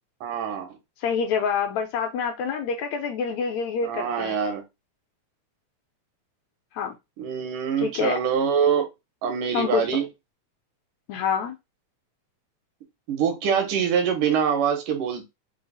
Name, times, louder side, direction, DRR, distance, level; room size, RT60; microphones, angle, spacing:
voice 1, 0.2-0.8 3.8-4.6 7.2-8.9 9.2-10.1 13.1-15.3, right 7 dB, 80° right, 5 dB, 2.6 m, -24 dB
voice 2, 1.0-4.4 6.7-6.9 7.8-8.2 9.5-9.8 11.1-11.6, left 6 dB, 75° left, 5 dB, 1.7 m, -26 dB
5.4 x 2.0 x 3.9 m, 0.22 s
omnidirectional pair, 3.6 m